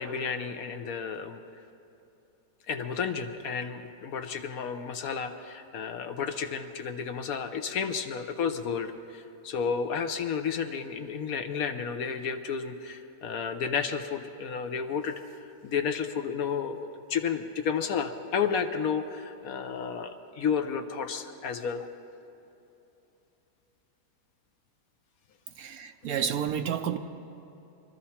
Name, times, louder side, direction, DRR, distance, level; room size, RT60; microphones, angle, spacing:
voice 1, 0.0-1.4 2.7-15.2 15.6-21.9, left 6 dB, 65° left, 8 dB, 1.1 m, -32 dB
voice 2, 25.6-27.0, right 8 dB, 70° right, 8 dB, 1.0 m, -30 dB
23.0 x 13.5 x 4.3 m, 2.9 s
omnidirectional pair, 1.8 m